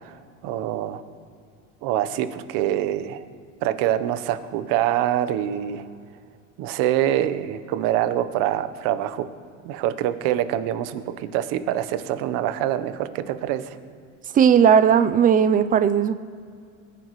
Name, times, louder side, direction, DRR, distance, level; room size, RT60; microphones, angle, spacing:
voice 1, 0.4-1.0 1.8-3.2 3.6-5.8 6.6-9.3 9.6-13.8, right 12 dB, 55° right, 12 dB, 1.0 m, -25 dB
voice 2, 14.3-16.2, right 8 dB, 20° right, 12 dB, 0.5 m, -17 dB
21.0 x 10.0 x 3.2 m, 2.3 s
supercardioid pair, 115°, 40 cm